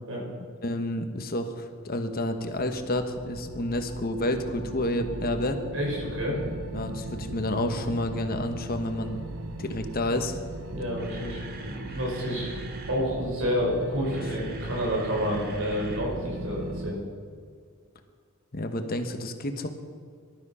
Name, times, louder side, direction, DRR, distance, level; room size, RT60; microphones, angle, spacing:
voice 1, 0.6-5.6 6.7-9.2 9.6-10.4 18.5-19.7, left 1 dB, 45° left, 7 dB, 1.2 m, -29 dB
sound 1, 2.4-16.9, right 2 dB, 80° right, 1.0 m, -38 dB
voice 2, 5.7-6.4 10.7-12.5 12.9-17.0, equal, 65° right, -2 dB, 5.5 m, -29 dB
Camera, 11.0-13.1 13.8-16.1 16.4-16.5 17.0-17.1, right 4 dB, 45° right, 1.7 m, -45 dB
20.5 x 12.5 x 5.6 m, 2.1 s
head